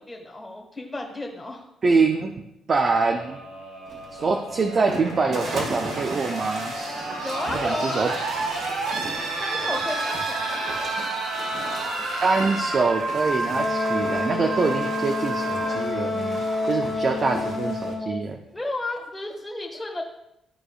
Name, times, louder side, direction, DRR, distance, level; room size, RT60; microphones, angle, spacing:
voice 1, 0.0-1.7 7.2-8.0 9.4-10.7 18.5-20.0, left 2 dB, 10° left, -2 dB, 1.7 m, -33 dB
voice 2, 1.8-3.4 4.1-6.7 7.5-8.1 12.2-18.4, right 4 dB, 45° right, 4 dB, 0.6 m, -24 dB
sound 1, 3.0-16.9 18.2-18.3, right 2 dB, 85° right, 1.7 m, -31 dB
sound 2, 3.8-17.9, right 2 dB, 65° right, 2.0 m, -37 dB
Wind instrument woodwind instrument, 13.6-18.2, left 3 dB, 40° left, 1.4 m, -28 dB
12.5 x 4.9 x 2.5 m, 0.84 s
cardioid pair, 85°, 0 cm